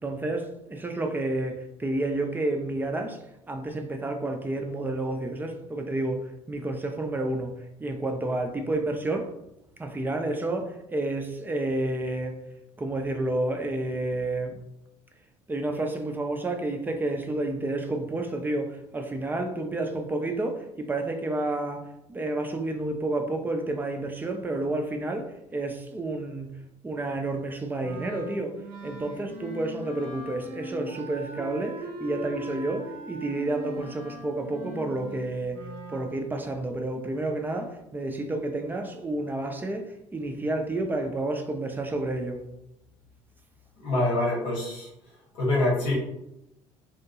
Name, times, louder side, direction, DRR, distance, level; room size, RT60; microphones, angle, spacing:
voice 1, 0.0-7.5 7.8-9.3 9.8-12.3 12.8-14.6 15.5-26.5 26.8-35.6 35.9-42.4, right 2 dB, 10° right, 0.4 m, -30 dB
Wind instrument woodwind instrument, 27.8-36.1, right 1 dB, 65° right, 0.6 m, -41 dB
voice 2, 43.8-44.9 45.3-45.9, left 1 dB, 65° left, 1.2 m, -25 dB
2.8 x 2.2 x 2.8 m
figure-of-eight pair, 60°, 17 cm